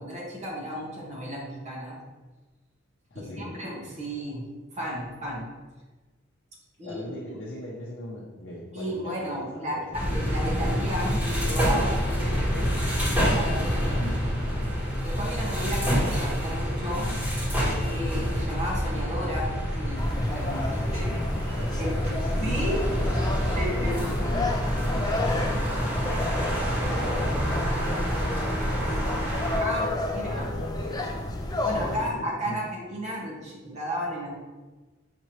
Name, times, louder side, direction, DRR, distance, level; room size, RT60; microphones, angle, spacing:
voice 1, 0.0-2.0 3.1-4.5 4.7-5.5 6.8-7.4 8.7-9.7 10.1-12.0 13.3-14.2 15.0-17.1 17.9-21.1 21.8-21.9 22.4-22.8 23.6-24.1 29.6-30.5 31.6-34.3, equal, 35° right, -4 dB, 0.9 m, -33 dB
voice 2, 3.1-3.6 6.8-10.2 12.1-14.1 20.9-29.3 29.9-31.2 31.6-32.6, left 1 dB, 70° left, -6 dB, 0.7 m, -39 dB
sound 1, 9.9-29.6, equal, 10° right, 1.3 m, -27 dB
sound 2, 20.0-32.0, left 2 dB, 20° left, 0.4 m, -31 dB
6.0 x 2.7 x 3.1 m, 1.2 s
head